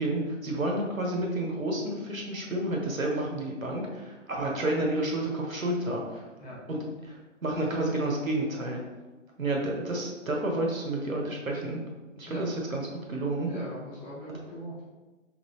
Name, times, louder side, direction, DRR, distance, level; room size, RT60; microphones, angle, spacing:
voice 1, 0.0-6.3 6.7-8.8 9.4-11.8 12.2-13.5, right 1 dB, 85° right, 0 dB, 1.3 m, -30 dB
voice 2, 13.4-14.9, equal, 10° left, -9 dB, 0.8 m, -40 dB
3.9 x 3.8 x 3.2 m, 1.2 s
figure-of-eight pair, 145°, 39 cm